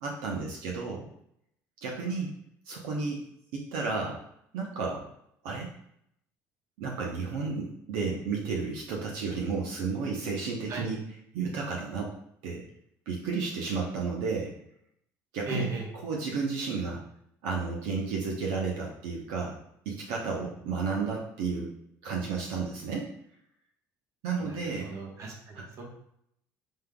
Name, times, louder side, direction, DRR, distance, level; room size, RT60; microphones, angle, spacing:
voice 1, 0.0-1.1 1.8-2.3 2.7-3.2 3.5-4.2 4.5-5.1 5.4-5.7 6.8-11.1 11.3-12.1 12.4-12.6 13.1-14.6 15.3-17.0 17.4-19.6 19.8-21.7 22.0-23.1 24.2-24.9 25.5-25.8, right 4 dB, 85° right, -1 dB, 0.8 m, -32 dB
voice 2, 15.5-15.8 24.4-24.5 24.8-25.8, right 3 dB, 50° right, 0 dB, 1.2 m, -35 dB
5.4 x 3.7 x 2.3 m, 0.72 s
supercardioid pair, 105°, 7 cm